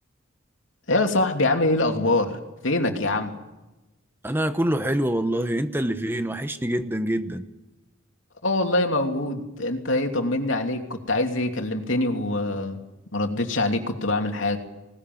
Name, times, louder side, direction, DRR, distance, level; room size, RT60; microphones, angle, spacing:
voice 1, 0.9-2.4 2.6-3.4 8.4-12.8 13.1-14.6, left 2 dB, 80° left, 4 dB, 2.9 m, -24 dB
voice 2, 4.2-7.5, right 1 dB, 10° right, 9 dB, 1.0 m, -25 dB
20.0 x 19.5 x 9.4 m, 1.0 s
head